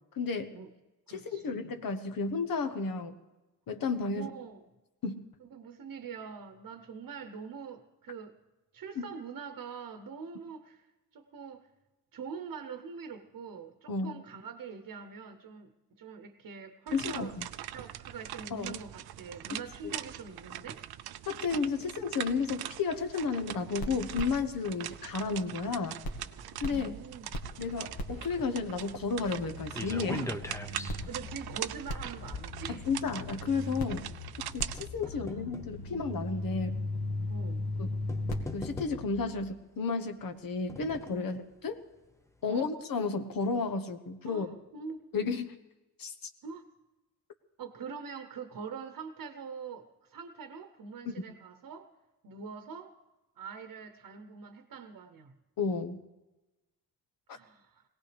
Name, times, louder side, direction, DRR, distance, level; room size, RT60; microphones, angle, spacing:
voice 1, 0.1-0.5 1.1-3.2 3.7-4.3 5.0-5.2 9.0-9.1 13.9-14.1 16.9-17.5 18.5-18.8 19.5-19.9 21.3-26.0 26.6-26.9 27.6-30.3 32.9-34.0 34.5-36.8 37.8-37.9 38.5-41.8 42.4-44.5 45.1-45.5 46.0-46.3 55.6-56.0, left 4 dB, 65° left, 8 dB, 1.2 m, -32 dB
voice 2, 1.1-1.5 4.1-4.6 5.4-8.4 8.7-10.9 11.1-11.7 12.1-17.4 17.6-20.8 21.8-21.9 26.4-27.4 30.1-30.3 30.7-32.9 37.3-37.7 41.1-41.4 42.4-42.7 44.2-45.0 46.4-46.7 47.6-51.9 52.2-52.9 53.4-55.3 57.3-57.8, right 5 dB, 65° right, 8 dB, 1.0 m, -44 dB
sound 1, 16.9-34.9, right 12 dB, 85° right, 0.6 m, -42 dB
sound 2, 23.6-25.7 26.0-39.5, left 1 dB, 80° left, 1.9 m, -39 dB
sound 3, 27.9-33.4 34.2-35.8 36.6-36.7 37.7-37.8 38.1-39.3 40.2-41.3 41.7-41.8 42.1-42.2, left 2 dB, 10° left, 0.7 m, -42 dB
22.0 x 17.5 x 3.4 m, 1.1 s
wide cardioid pair, 120°, 37 cm